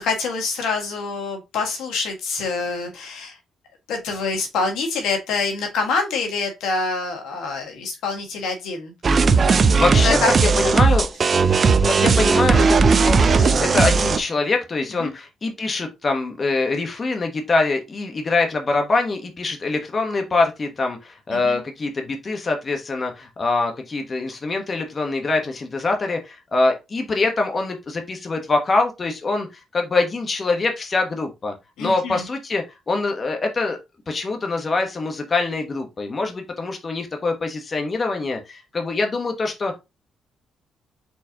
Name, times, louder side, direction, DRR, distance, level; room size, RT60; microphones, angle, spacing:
voice 1, 0.0-3.4 3.9-8.9 9.7-10.8 11.5-11.7 15.0-15.1 21.3-21.6 31.8-32.2, left 4 dB, 85° left, 1.6 m, -26 dB
sound 1, 9.0-14.2, right 4 dB, 40° right, 0.5 m, -17 dB
voice 2, 9.7-10.2 10.6-11.1 11.8-31.5 31.8-33.8 34.1-39.8, left 3 dB, 35° left, 1.1 m, -24 dB
4.5 x 4.0 x 2.8 m
cardioid pair, 90°, 0 cm